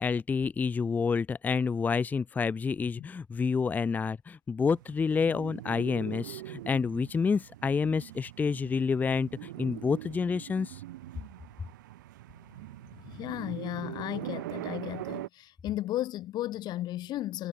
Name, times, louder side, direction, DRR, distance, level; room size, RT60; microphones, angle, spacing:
voice 1, 0.0-10.8, left 5 dB, 15° left, 0.7 m, -29 dB
sound 1, 4.6-15.3, right 16 dB, 85° right, 4.8 m, -42 dB
voice 2, 13.0-17.5, left 14 dB, 45° left, 3.9 m, -35 dB
supercardioid pair, 120°, 10 cm